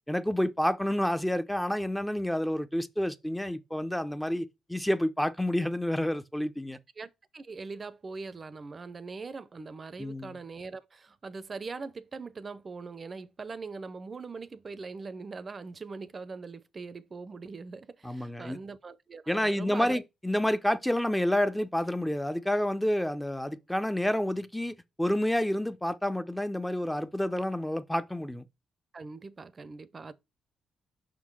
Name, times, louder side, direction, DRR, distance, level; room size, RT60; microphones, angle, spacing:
voice 1, 0.1-6.8 10.0-10.4 18.0-18.6 19.3-28.5, left 1 dB, 5° left, 0.6 m, -29 dB
voice 2, 7.0-20.0 28.9-30.1, right 4 dB, 35° right, 0.6 m, -41 dB
5.9 x 3.8 x 6.1 m
cardioid pair, 90°, 0 cm